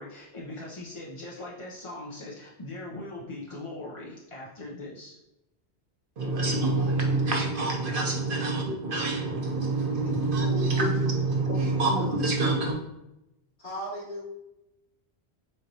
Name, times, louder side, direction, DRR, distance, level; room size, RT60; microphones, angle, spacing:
voice 1, 0.0-5.2, left 2 dB, 35° left, -4 dB, 0.5 m, -40 dB
voice 2, 6.2-12.8, right 2 dB, 55° right, 0 dB, 0.9 m, -26 dB
voice 3, 10.0-10.6 11.5-11.8 13.6-14.2, equal, 55° left, -5 dB, 1.9 m, -39 dB
6.5 x 2.9 x 2.7 m, 0.90 s
omnidirectional pair, 1.1 m